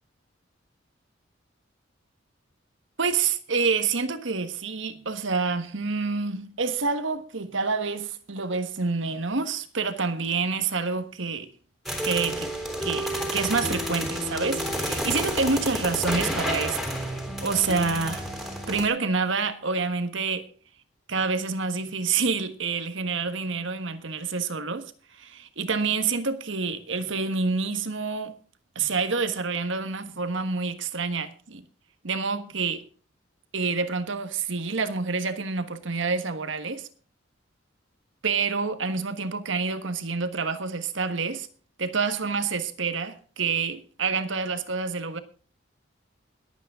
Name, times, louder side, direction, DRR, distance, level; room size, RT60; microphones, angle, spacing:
voice 1, 3.0-11.5 12.0-12.5 12.8-17.0 17.4-18.3 18.7-20.5 21.1-28.4 28.7-31.6 32.0-32.9 33.5-36.9 38.2-41.5 41.8-45.2, right 4 dB, 70° right, 1.4 m, -28 dB
sound 1, 11.9-18.9, equal, ahead, 3.3 m, -30 dB
21.5 x 8.8 x 3.7 m
head